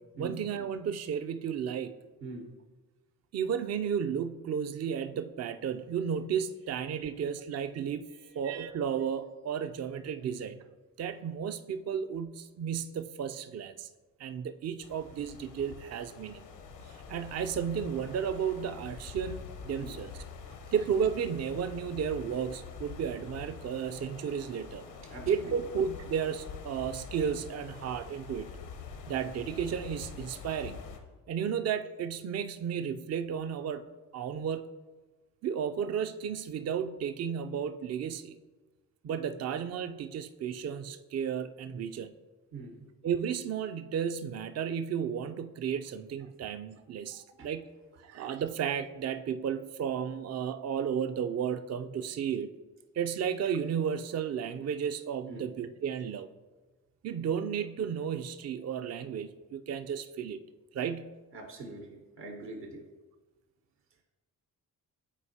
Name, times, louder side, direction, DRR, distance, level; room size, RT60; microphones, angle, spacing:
voice 1, 0.0-1.9 3.3-8.1 8.4-10.6 11.0-13.9 14.2-16.4 17.1-20.1 20.7-24.9 25.3-28.5 29.1-30.8 31.3-33.9 34.1-34.6 35.4-38.4 39.0-42.1 43.0-47.7 48.0-52.5 53.0-56.3 57.0-60.4 60.7-61.2, right 7 dB, 40° right, 9 dB, 0.5 m, -33 dB
sound 1, 14.8-31.0, left 6 dB, 70° left, 0.9 m, -45 dB
voice 2, 25.0-25.5 42.5-42.8 47.1-47.5 55.3-55.4 61.3-62.8, right 2 dB, 70° right, 2 dB, 1.2 m, -44 dB
9.9 x 4.3 x 2.8 m, 1.3 s
hypercardioid pair, 40°, 43 cm